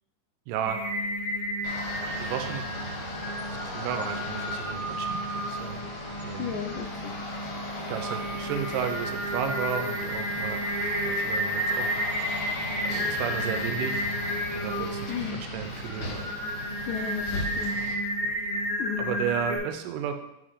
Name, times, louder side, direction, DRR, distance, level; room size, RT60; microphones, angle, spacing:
voice 1, 0.5-0.8 2.2-2.7 3.5-5.8 6.2-6.5 7.9-10.8 11.0-12.1 12.9-14.1 14.5-16.2 18.2-18.3 19.0-20.2, right 8 dB, 90° right, 7 dB, 2.2 m, -33 dB
Singing, 0.6-19.6, equal, ahead, 1.4 m, -32 dB
sound 1, 1.6-17.9, left 1 dB, 65° left, 2.7 m, -38 dB
voice 2, 6.4-7.2 15.1-15.4 16.9-17.9 18.8-19.2, left 9 dB, 80° left, 2 dB, 2.2 m, -34 dB
5.4 x 5.0 x 5.6 m, 0.85 s
omnidirectional pair, 3.7 m